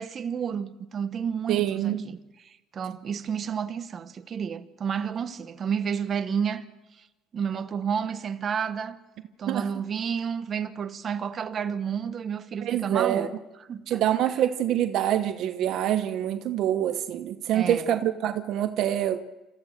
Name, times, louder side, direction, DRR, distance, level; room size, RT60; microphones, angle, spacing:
voice 1, 0.0-6.6 7.3-9.0 9.4-13.3 13.7-14.4 17.5-17.9, right 7 dB, 40° right, 1.2 m, -31 dB
voice 2, 1.5-2.0 9.5-9.7 12.6-13.3 13.9-19.2, right 11 dB, 65° right, 1.0 m, -25 dB
29.0 x 14.5 x 6.7 m
cardioid pair, 115°, 0 cm